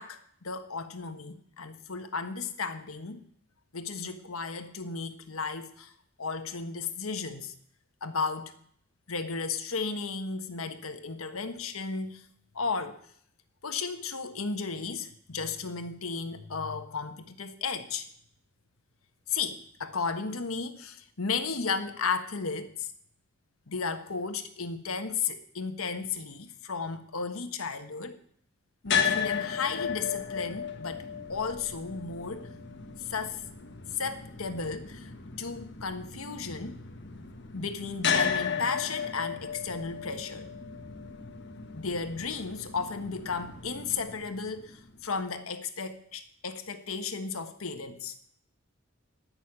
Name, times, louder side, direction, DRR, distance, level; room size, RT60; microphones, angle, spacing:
voice 1, 0.0-3.2 3.7-5.9 6.2-7.5 8.0-8.5 9.1-12.2 12.5-13.0 13.6-18.1 19.3-22.9 23.7-28.2 28.8-32.5 33.0-33.4 33.9-35.1 35.4-36.8 37.5-40.5 41.7-48.1, left 5 dB, 85° left, 8 dB, 1.4 m, -34 dB
sound 1, 28.9-45.0, left 7 dB, 55° left, 1.5 m, -35 dB
16.5 x 6.5 x 9.7 m, 0.64 s
head